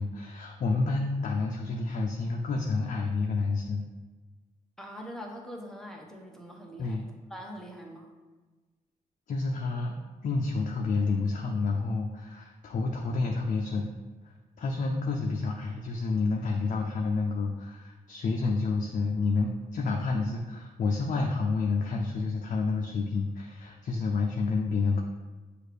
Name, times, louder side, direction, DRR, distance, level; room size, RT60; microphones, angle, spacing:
voice 1, 0.0-3.8 6.8-7.0 9.3-9.9 10.2-13.9 14.2-25.0, left 3 dB, 55° left, 1 dB, 0.5 m, -29 dB
voice 2, 4.8-7.0 7.3-8.1, equal, 5° left, 0 dB, 0.8 m, -43 dB
6.2 x 2.5 x 3.3 m, 1.3 s
cardioid pair, 90°, 15 cm